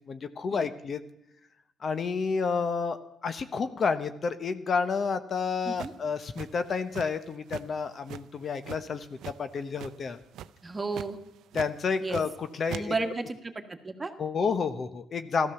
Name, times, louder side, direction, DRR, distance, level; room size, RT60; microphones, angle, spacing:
voice 1, 0.1-1.0 1.8-9.1 9.4-10.2 11.5-12.9 14.2-15.5, left 5 dB, 50° left, 11 dB, 1.0 m, -30 dB
sound 1, 5.8-7.2 7.5-7.7 8.1-9.4 9.7-10.1 10.3-10.6 10.9-11.1 11.5-12.4 12.7-12.8, right 11 dB, 80° right, 0.5 m, -40 dB
voice 2, 10.6-11.2 12.0-12.2 12.7-14.1, right 3 dB, 25° right, 6 dB, 1.6 m, -33 dB
14.0 x 13.0 x 7.0 m, 0.81 s
cardioid pair, 80°, 0 cm